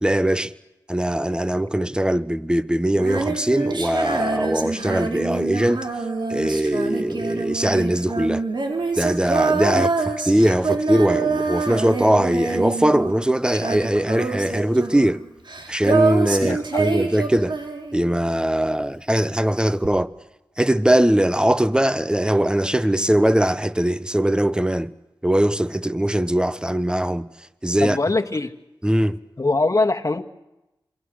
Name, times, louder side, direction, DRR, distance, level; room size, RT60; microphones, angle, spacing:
voice 1, 0.0-0.5 0.9-5.9 6.3-8.4 9.0-15.2 15.7-17.5 17.9-20.1 20.6-24.9 25.2-27.3 27.6-28.0 28.8-29.2, right 1 dB, 10° right, 1.2 m, -21 dB
Female singing, 2.9-18.3 19.8-19.9, right 4 dB, 65° right, 4.6 m, -25 dB
voice 2, 16.4-16.8 27.8-28.5 29.4-30.2, left 2 dB, 40° left, 1.8 m, -22 dB
27.5 x 25.0 x 6.4 m
cardioid pair, 50°, 9 cm